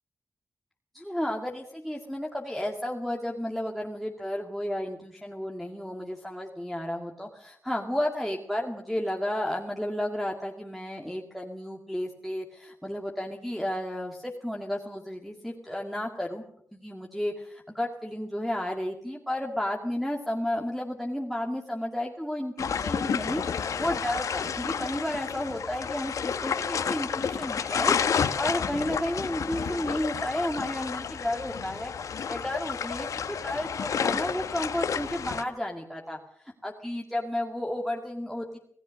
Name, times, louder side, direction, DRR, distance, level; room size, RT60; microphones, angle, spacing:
voice 1, 0.9-16.4 16.7-31.9 32.3-33.1 33.4-38.6, left 1 dB, ahead, -1 dB, 2.1 m, -32 dB
sound 1, 22.6-35.4, left 7 dB, 75° left, 1.5 m, -30 dB
27.0 x 17.5 x 6.4 m, 0.67 s
wide cardioid pair, 140°, 6 cm